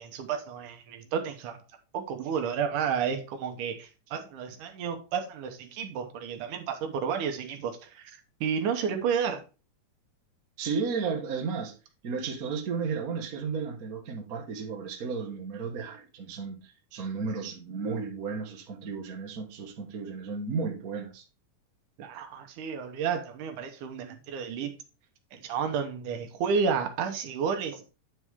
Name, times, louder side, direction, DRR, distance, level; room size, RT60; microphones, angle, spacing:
voice 1, 0.0-1.6 1.9-9.4 22.0-24.7 25.3-27.9, right 6 dB, 75° right, 2.3 m, -31 dB
voice 2, 10.6-11.7 12.0-21.2, right 5 dB, 55° right, 0.9 m, -33 dB
9.8 x 4.8 x 3.6 m
omnidirectional pair, 3.8 m